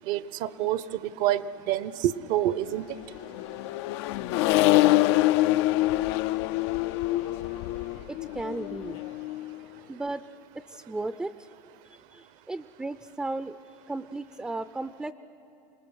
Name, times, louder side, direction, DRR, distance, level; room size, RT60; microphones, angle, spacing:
voice 1, 0.1-2.9, right 13 dB, 60° right, 17 dB, 0.7 m, -27 dB
Accelerating revving vroom, 2.9-9.6, left 17 dB, 70° left, 0.4 m, -25 dB
voice 2, 8.1-9.0 9.9-10.2 10.7-11.5 11.9-13.6 13.9-15.1, right 2 dB, 5° right, 12 dB, 0.4 m, -35 dB
26.5 x 19.5 x 6.2 m, 2.7 s
supercardioid pair, 105°, 15 cm